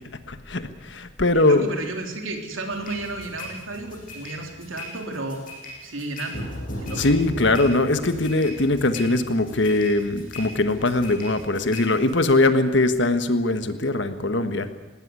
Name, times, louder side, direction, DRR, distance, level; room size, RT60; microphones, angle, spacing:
voice 1, 0.1-1.7 7.0-14.7, left 2 dB, 65° left, 10 dB, 1.5 m, -21 dB
voice 2, 1.3-5.4 5.8-6.5 6.8-7.1, right 2 dB, 90° right, 3 dB, 3.8 m, -33 dB
sound 1, 2.7-12.3, left 1 dB, 45° left, 8.0 m, -38 dB
18.5 x 18.0 x 9.7 m, 1.1 s
head